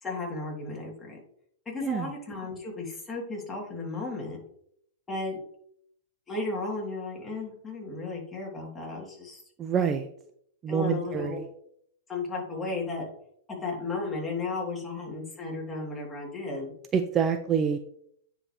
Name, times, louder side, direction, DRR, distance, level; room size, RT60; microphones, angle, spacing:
voice 1, 0.0-1.2 1.6-4.4 5.1-5.4 6.3-9.4 10.7-11.4 12.1-13.1 13.6-16.7, left 3 dB, 15° left, -3 dB, 3.1 m, -34 dB
voice 2, 1.8-2.1 9.6-10.1 10.6-11.5 16.9-17.8, right 7 dB, 25° right, 8 dB, 0.5 m, -26 dB
9.6 x 5.1 x 3.2 m, 0.69 s
hypercardioid pair, 115°, 0 cm